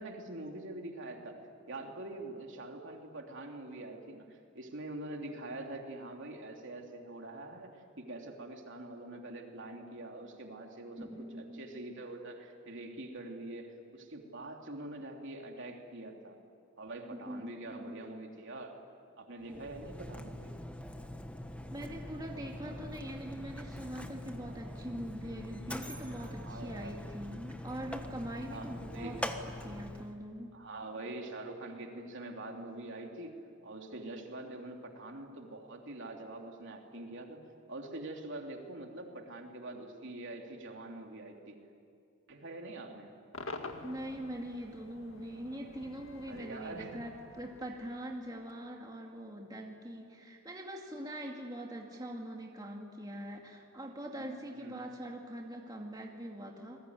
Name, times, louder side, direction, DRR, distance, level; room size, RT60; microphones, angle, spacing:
voice 1, 0.0-1.4 1.7-16.4 16.8-18.8 19.2-20.5 26.4-27.0 28.5-29.3 30.5-37.4 37.7-41.6 42.3-43.1 46.3-47.0 54.1-54.8, right 2 dB, 60° right, 2 dB, 3.3 m, -44 dB
voice 2, 11.0-11.6 17.1-18.0 19.5-19.7 21.7-30.5 43.8-56.8, equal, 20° right, 0 dB, 2.3 m, -43 dB
Mechanisms, 19.4-30.2, left 1 dB, 5° left, 1.4 m, -43 dB
Cheering / Crowd / Fireworks, 43.3-48.6, left 3 dB, 65° left, 2.0 m, -48 dB
28.0 x 21.5 x 9.8 m, 2.5 s
head